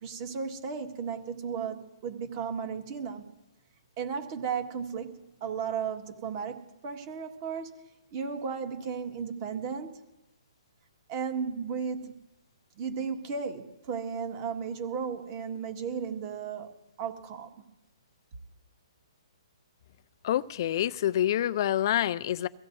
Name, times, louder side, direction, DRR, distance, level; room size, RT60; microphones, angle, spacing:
voice 1, 0.0-3.2 4.0-5.1 5.4-7.8 8.1-9.9 11.1-12.2 12.8-16.7 17.0-17.5, right 6 dB, 30° right, 1.7 m, -34 dB
voice 2, 20.2-22.5, left 12 dB, 45° left, 0.5 m, -27 dB
24.5 x 16.0 x 2.7 m
hypercardioid pair, 160°, 3 cm